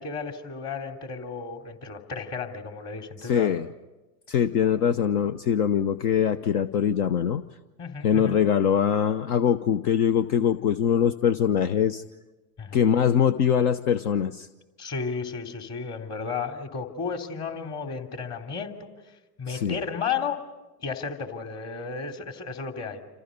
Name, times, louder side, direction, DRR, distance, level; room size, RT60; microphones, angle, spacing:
voice 1, 0.0-3.5 7.8-8.4 12.6-12.8 14.8-18.9 19.4-20.4 20.8-23.0, left 5 dB, 35° left, 4 dB, 3.2 m, -33 dB
voice 2, 3.2-3.7 4.3-7.4 8.0-12.0 12.7-14.5 19.5-19.8, left 8 dB, 70° left, 12 dB, 1.0 m, -23 dB
29.5 x 27.5 x 5.3 m, 1.1 s
hypercardioid pair, 95°, 47 cm